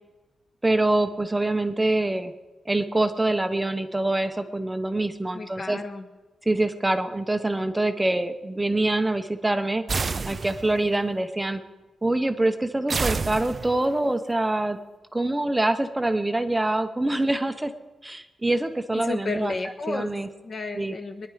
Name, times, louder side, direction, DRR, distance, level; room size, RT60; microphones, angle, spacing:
voice 1, 0.6-2.3 2.7-5.8 6.5-9.8 10.3-11.6 12.0-14.8 15.1-17.7 18.0-19.6 19.9-20.3 20.8-20.9, right 2 dB, 10° right, 8 dB, 0.8 m, -25 dB
voice 2, 5.3-6.1 18.9-20.1 20.4-21.3, left 3 dB, 35° left, 5 dB, 1.3 m, -32 dB
sound 1, 9.9-10.9 12.9-14.0, right 4 dB, 30° right, 0.4 m, -29 dB
23.0 x 10.5 x 4.9 m, 1.1 s
wide cardioid pair, 175°, 0 cm